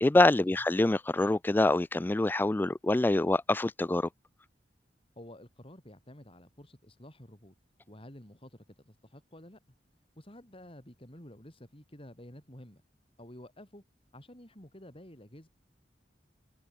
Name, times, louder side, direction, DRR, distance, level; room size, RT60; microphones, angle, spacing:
voice 1, 0.0-4.1, left 2 dB, 10° left, 0.3 m, -25 dB
voice 2, 5.2-7.5 7.9-9.6 10.2-12.8 13.2-13.8 14.1-15.5, left 1 dB, 30° left, 5.6 m, -51 dB
head